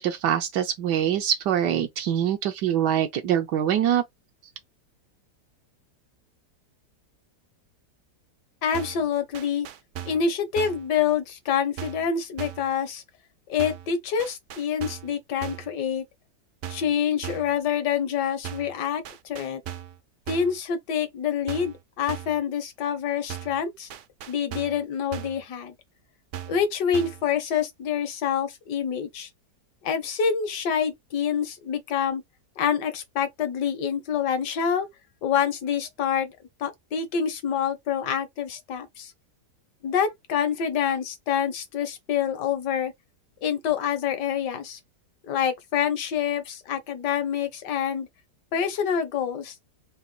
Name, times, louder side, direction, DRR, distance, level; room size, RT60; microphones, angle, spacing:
voice 1, 0.0-4.0, right 10 dB, 85° right, 1.3 m, -24 dB
voice 2, 8.6-9.7 10.0-13.0 13.5-16.0 16.7-19.6 20.3-23.9 24.3-25.7 26.5-29.3 29.8-32.2 32.6-34.9 35.2-39.1 39.8-42.9 43.4-44.8 45.2-48.1 48.5-49.5, left 7 dB, 80° left, 1.6 m, -27 dB
sound 1, 8.7-9.1 9.3-10.3 10.6-10.9 11.8-12.1 12.4-12.7 13.6-13.9 14.2-15.1 15.4-15.7 16.6-16.9 17.2-17.6 18.4-18.8 19.0-20.0 20.3-20.6 21.5-21.8 22.1-22.4 23.3-23.6 23.9-24.8 25.1-25.4 26.3-26.7 26.9-27.3, right 10 dB, 70° right, 0.7 m, -38 dB
4.1 x 2.2 x 3.7 m
omnidirectional pair, 1.8 m